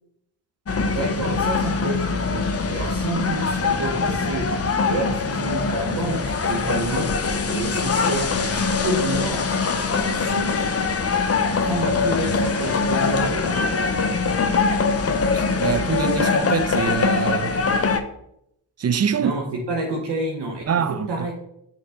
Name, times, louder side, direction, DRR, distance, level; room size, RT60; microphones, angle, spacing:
sound 1, 0.7-18.0, left 4 dB, 30° left, 0.7 m, -23 dB
voice 1, 0.8-4.5 4.8-9.5 9.9-10.8 11.6-13.7 19.2-21.3, right 2 dB, 60° right, 1.0 m, -29 dB
voice 2, 15.3-17.6 18.8-19.3 20.7-21.1, right 7 dB, 35° right, 0.4 m, -24 dB
6.5 x 4.1 x 3.6 m
supercardioid pair, 45°, 46 cm